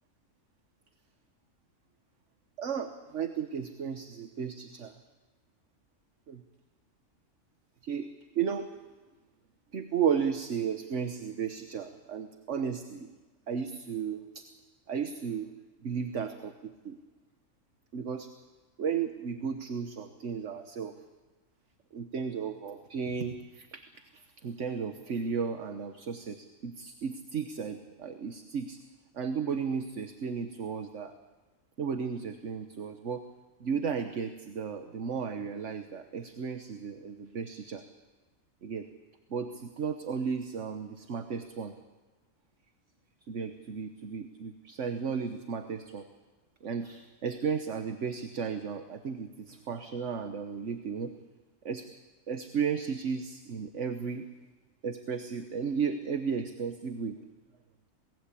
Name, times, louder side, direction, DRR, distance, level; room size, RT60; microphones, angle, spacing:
voice 1, 2.6-4.9 6.3-6.4 7.8-8.1 8.3-8.7 9.7-13.1 13.5-14.4 14.9-15.5 15.8-17.0 17.9-18.3 18.8-20.9 21.9-23.8 24.4-28.8 29.1-31.1 31.8-33.2 33.6-37.8 38.6-38.9 39.3-41.8 43.3-46.1 46.6-51.1 51.6-51.9 52.3-54.3 54.8-57.2, right 6 dB, 60° right, 8 dB, 1.4 m, -34 dB
27.5 x 19.0 x 8.4 m, 1.2 s
omnidirectional pair, 1.4 m